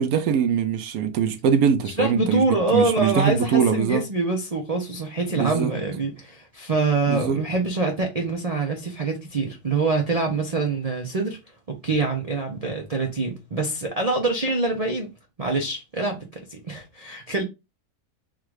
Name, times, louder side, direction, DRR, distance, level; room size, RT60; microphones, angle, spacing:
voice 1, 0.0-4.0 5.3-5.7 7.1-7.4, right 7 dB, 70° right, 1.0 m, -22 dB
voice 2, 1.8-11.4 11.8-15.1 15.4-17.4, right 3 dB, 50° right, 0.4 m, -25 dB
3.7 x 2.4 x 4.6 m
omnidirectional pair, 1.7 m